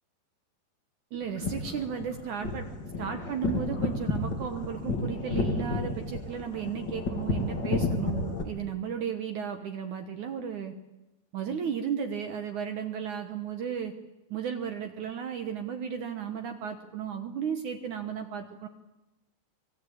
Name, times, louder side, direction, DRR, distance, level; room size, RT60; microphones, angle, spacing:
voice 1, 1.1-2.7 3.0-10.7 11.3-13.9 14.3-18.7, right 7 dB, 65° right, 7 dB, 2.0 m, -34 dB
sound 1, 1.2-8.4, left 3 dB, 30° left, 2.7 m, -31 dB
25.5 x 21.0 x 8.7 m, 0.97 s
omnidirectional pair, 5.1 m